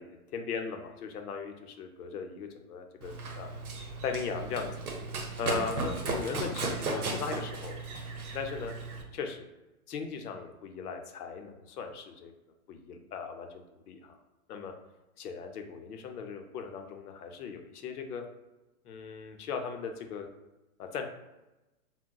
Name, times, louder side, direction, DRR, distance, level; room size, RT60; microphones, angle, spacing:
voice 1, 0.0-3.5 4.0-4.8 5.4-7.8 8.1-8.7 9.1-9.4 9.9-12.3 12.7-14.2 14.5-14.7 15.2-18.2 18.8-20.3 20.8-21.1, left 5 dB, 90° left, 5 dB, 0.6 m, -38 dB
Run, 3.0-9.0, right 3 dB, 75° right, 0.7 m, -36 dB
3.7 x 2.1 x 2.2 m, 1.0 s
hypercardioid pair, 170°, 44 cm